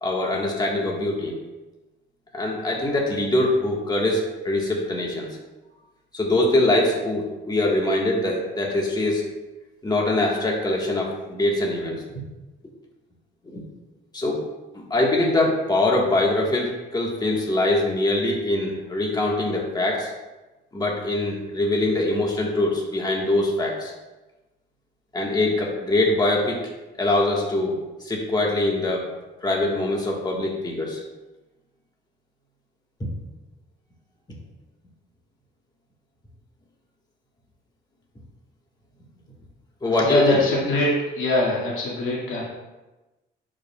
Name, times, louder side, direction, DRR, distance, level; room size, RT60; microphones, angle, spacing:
voice 1, 0.0-1.3 2.3-5.3 6.1-9.3 9.8-12.0 13.4-13.6 14.1-14.4 14.9-20.1 20.7-23.9 25.1-26.6 27.0-29.1 29.4-31.0 33.0-33.1 39.8-40.4, left 2 dB, 20° left, -2 dB, 1.5 m, -23 dB
voice 2, 39.8-42.4, left 1 dB, 85° left, -5 dB, 2.2 m, -23 dB
10.5 x 5.0 x 2.4 m, 1.1 s
cardioid pair, 90°, 20 cm